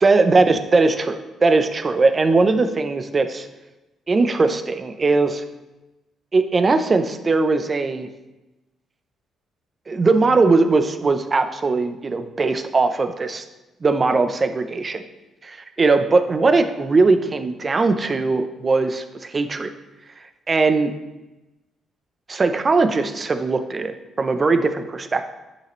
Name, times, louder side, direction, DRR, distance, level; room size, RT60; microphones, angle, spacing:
voice 1, 0.0-3.5 4.1-5.4 6.3-8.1 9.9-13.4 13.8-15.0 15.4-19.7 20.5-20.9 22.3-25.2, right 3 dB, 35° right, 8 dB, 0.7 m, -19 dB
9.8 x 5.8 x 3.1 m, 1.0 s
cardioid pair, 90°, 0 cm